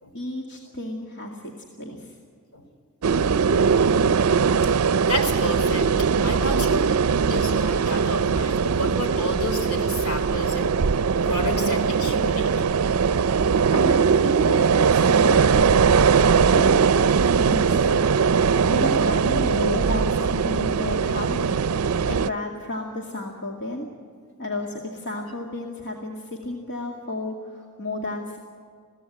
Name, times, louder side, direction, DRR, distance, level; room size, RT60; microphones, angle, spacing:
voice 1, 0.1-1.4 1.8-2.1 13.1-13.4 13.7-15.9 16.1-16.9 17.4-18.1 18.7-21.6 22.1-23.9 24.4-28.4, left 1 dB, 55° left, 0 dB, 2.3 m, -32 dB
sound 1, 3.0-22.3, right 6 dB, 75° right, 0.5 m, -20 dB
voice 2, 3.7-7.0 7.3-10.7 11.2-12.5, equal, 75° left, 5 dB, 3.8 m, -31 dB
22.0 x 16.5 x 8.8 m, 2.1 s
head